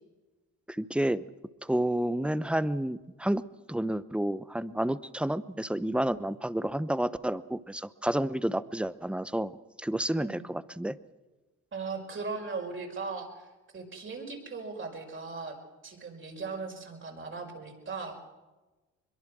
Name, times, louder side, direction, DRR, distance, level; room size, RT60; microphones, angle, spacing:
voice 1, 0.7-1.2 1.6-3.4 3.7-9.5 9.8-10.9, right 1 dB, 5° right, 15 dB, 0.8 m, -30 dB
voice 2, 11.7-13.5 13.7-15.6 15.8-18.2, right 4 dB, 40° right, 3 dB, 5.3 m, -38 dB
23.0 x 22.5 x 6.2 m, 1.2 s
cardioid pair, 90°, 30 cm